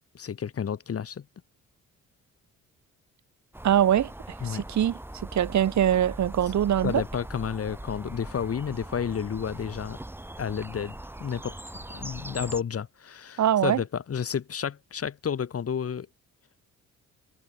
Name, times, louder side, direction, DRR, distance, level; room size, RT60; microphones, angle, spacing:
voice 1, 0.1-1.2 4.4-4.6 6.8-10.0 10.4-11.5 11.9-16.1, left 7 dB, 50° left, 7.9 m, -31 dB
sound 1, 3.5-12.6, right 1 dB, 5° right, 6.4 m, -41 dB
voice 2, 3.6-4.1 4.4-5.0 5.3-7.0 13.4-13.8, right 10 dB, 65° right, 5.8 m, -23 dB
cardioid pair, 90°, 30 cm